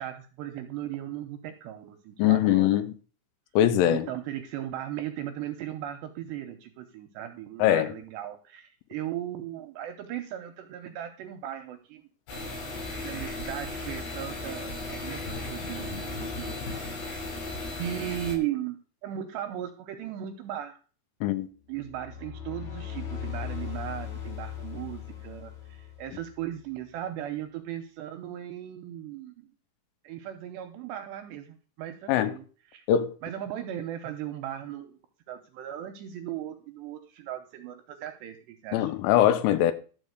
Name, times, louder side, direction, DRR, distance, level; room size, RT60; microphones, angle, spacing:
voice 1, 0.0-2.8 3.9-12.0 13.0-17.1 17.8-20.8 21.7-29.5 30.0-32.4 32.7-32.8 33.2-35.0 35.3-38.9, right 11 dB, 80° right, 2.6 m, -37 dB
voice 2, 2.2-2.9 3.6-4.1 7.6-7.9 21.2-21.5 32.1-32.3 32.9-33.1 38.7-39.7, left 12 dB, 80° left, 3.2 m, -22 dB
sound 1, 12.3-18.3, left 2 dB, 60° left, 7.0 m, -36 dB
sound 2, 21.8-26.4, left 9 dB, 40° left, 2.9 m, -38 dB
12.5 x 4.9 x 8.0 m
omnidirectional pair, 5.7 m